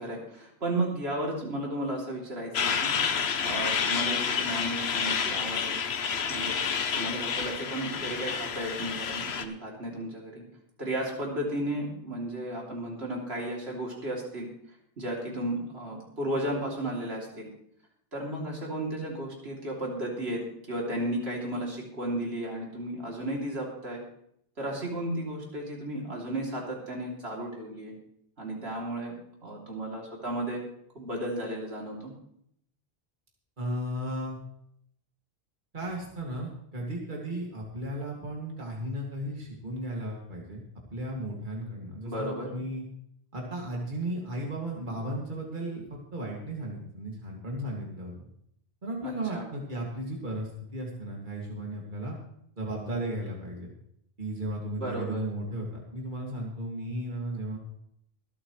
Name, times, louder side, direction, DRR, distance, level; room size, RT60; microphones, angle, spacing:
voice 1, 0.0-3.0 3.4-5.8 6.3-6.6 6.9-10.4 10.8-14.5 15.0-17.5 18.1-24.0 24.6-27.9 28.4-29.1 29.4-30.6 30.9-32.1 42.0-42.5 49.0-49.4 54.8-55.2, right 1 dB, 80° right, -2 dB, 3.2 m, -34 dB
Truck, 2.5-9.4, left 6 dB, 85° left, 1.1 m, -29 dB
voice 2, 33.6-34.4 35.7-40.6 40.9-42.8 43.3-48.1 48.8-52.2 52.6-53.7 54.2-57.6, right 1 dB, 50° right, -1 dB, 2.4 m, -35 dB
25.0 x 8.7 x 3.2 m, 0.72 s
omnidirectional pair, 1.0 m